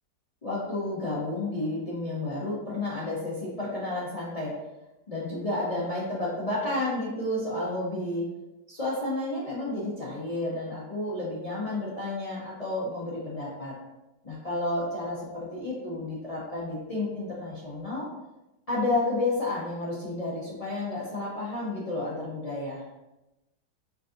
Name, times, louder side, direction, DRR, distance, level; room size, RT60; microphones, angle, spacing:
voice 1, 0.4-4.6 5.1-8.3 8.7-13.8 14.2-18.1 18.7-22.8, left 2 dB, 45° left, -7 dB, 0.4 m, -31 dB
5.0 x 2.6 x 2.5 m, 0.97 s
omnidirectional pair, 1.8 m